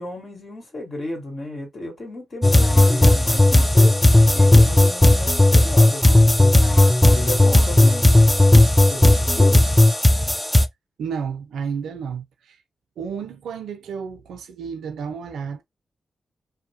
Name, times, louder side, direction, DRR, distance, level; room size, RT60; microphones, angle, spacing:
voice 1, 0.0-4.0 4.3-6.3 7.1-8.1 8.9-9.6, left 2 dB, 55° left, 1.6 m, -33 dB
sound 1, 2.4-10.7, left 1 dB, 10° left, 0.4 m, -15 dB
voice 2, 11.0-12.6 13.0-15.6, right 6 dB, 85° right, 0.5 m, -31 dB
2.8 x 2.1 x 2.8 m
supercardioid pair, 45°, 0 cm